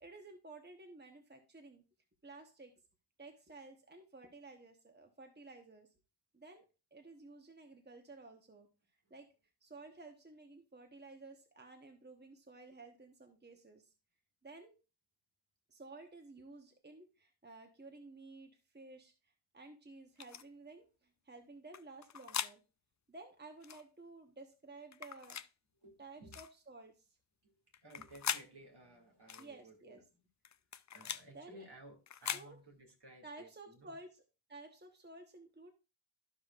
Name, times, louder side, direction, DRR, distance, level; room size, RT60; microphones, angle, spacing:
voice 1, 0.0-1.8 2.2-2.7 3.2-5.9 6.3-8.7 9.1-9.3 9.6-13.9 14.4-14.7 15.7-22.6 23.1-25.4 26.0-27.2 29.4-30.0 31.3-31.6 32.3-32.6 33.2-34.2 34.5-35.7, right 3 dB, 20° right, 4 dB, 1.1 m, -54 dB
sound 1, 20.2-20.4 21.7-22.5 23.6-23.8 24.9-25.5 26.3-26.5 27.7-28.5 29.3-29.5 30.4-31.2 32.1-32.5, left 8 dB, 40° left, 0.4 m, -41 dB
voice 2, 25.8-26.4 27.4-27.5 27.8-30.0 30.9-34.0, right 1 dB, 55° right, 1 dB, 2.3 m, -57 dB
13.5 x 5.0 x 2.4 m, 0.30 s
cardioid pair, 55°, 47 cm